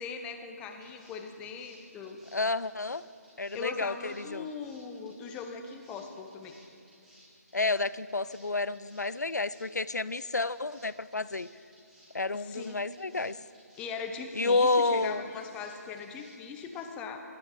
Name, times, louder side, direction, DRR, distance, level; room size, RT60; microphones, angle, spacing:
voice 1, 0.0-2.2 3.5-6.5 12.3-12.8 13.8-17.2, left 5 dB, 10° left, 5 dB, 0.9 m, -40 dB
sound 1, 0.7-16.8, right 1 dB, 5° right, 3.6 m, -60 dB
voice 2, 2.3-3.0 3.4-4.5 7.5-11.5 12.1-13.4 14.3-15.2, left 3 dB, 85° left, 17 dB, 0.4 m, -30 dB
23.0 x 9.8 x 5.0 m, 2.4 s
figure-of-eight pair, 150°, 9 cm